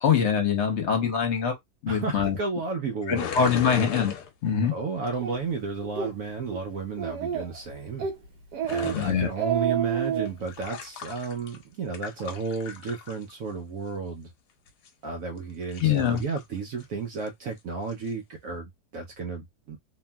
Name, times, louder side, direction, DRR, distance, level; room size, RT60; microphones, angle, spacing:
voice 1, 0.0-1.5 1.8-2.4 3.1-4.1 4.4-4.7 8.9-9.3 15.8-16.2, left 7 dB, 50° left, 1.1 m, -23 dB
voice 2, 1.9-3.3 4.6-8.1 8.6-14.3 15.0-19.8, right 4 dB, 65° right, 0.9 m, -33 dB
sound 1, 3.1-4.7 8.6-9.1 10.3-11.6 11.9-13.3 14.7-14.9 15.5-16.4 16.8-16.9 17.2-17.3 17.9-18.1, left 8 dB, 90° left, 1.3 m, -37 dB
Speech, 5.2-5.4 5.8-6.1 6.5-6.6 7.0-7.6 8.0-8.2 8.5-8.9 9.2-10.3, right 8 dB, 90° right, 1.4 m, -28 dB
2.9 x 2.6 x 2.2 m
omnidirectional pair, 1.7 m